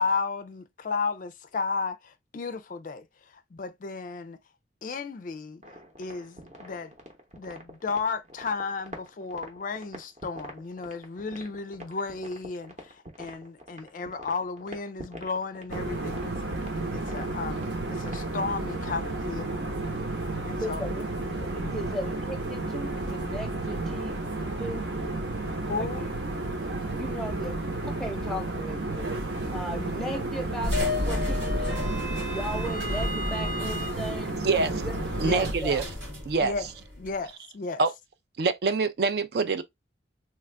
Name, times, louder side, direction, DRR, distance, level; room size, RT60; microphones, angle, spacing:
voice 1, 0.0-4.4 4.8-5.6 6.0-6.9 7.4-20.0 20.4-20.8 21.6-22.0 25.7-26.0 35.2-35.5 36.4-36.7 37.0-37.8, left 4 dB, 45° left, 0.3 m, -34 dB
sound 1, 5.6-18.4, equal, 35° right, 0.8 m, -45 dB
sound 2, 15.7-35.5, right 2 dB, 70° right, 1.1 m, -32 dB
voice 2, 20.6-21.1 21.4-24.2 24.6-24.9 25.8-26.1 27.0-29.1 29.5-30.7 31.0-31.9 32.3-34.4 34.8-35.0 35.5-35.8, equal, ahead, 0.7 m, -37 dB
sound 3, 30.6-37.1, left 1 dB, 90° right, 2.1 m, -32 dB
voice 3, 34.4-34.8 35.2-35.8 36.3-36.5 37.8-37.9 38.4-39.6, right 4 dB, 55° right, 0.4 m, -25 dB
3.1 x 2.4 x 3.3 m
head